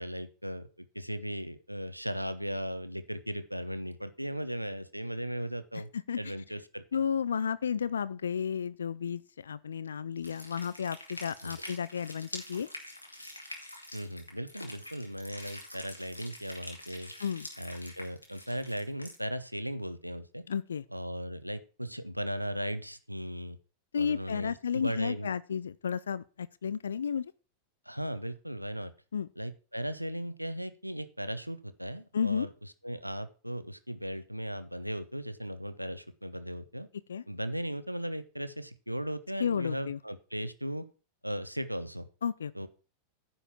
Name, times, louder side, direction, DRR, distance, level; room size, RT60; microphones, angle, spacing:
voice 1, 0.0-5.9 6.2-7.0 11.4-11.6 13.9-17.1 17.6-20.4 20.9-23.6 24.0-25.3 27.9-28.9 29.4-36.9 37.3-40.9 41.2-42.1 42.5-42.7, equal, 90° right, 0.7 m, -37 dB
voice 2, 6.9-12.7 17.2-17.5 20.5-20.8 23.9-27.3 29.1-29.3 32.1-32.5 37.1-37.2 39.4-40.0 42.2-42.5, left 7 dB, 70° left, 0.4 m, -32 dB
sound 1, 10.2-19.2, left 1 dB, 85° left, 2.5 m, -45 dB
10.0 x 5.6 x 7.2 m
figure-of-eight pair, 90°, 0 cm